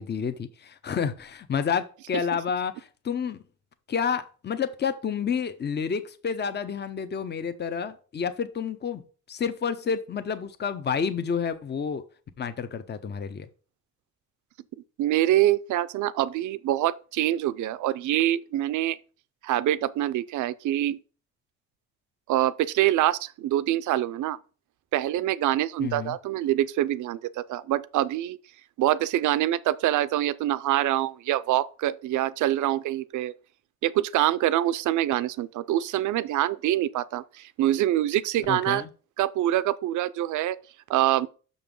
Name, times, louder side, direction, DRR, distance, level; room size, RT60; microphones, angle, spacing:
voice 1, 0.0-3.4 3.9-9.0 9.3-12.0 12.4-13.5 25.8-26.1 38.5-38.9, left 6 dB, 35° left, 0.8 m, -29 dB
voice 2, 15.0-19.0 19.4-21.0 22.3-24.4 24.9-28.4 28.8-33.3 33.8-38.8 39.2-40.6 40.9-41.3, right 13 dB, 75° right, 0.6 m, -25 dB
6.1 x 5.5 x 5.3 m
cardioid pair, 90°, 30 cm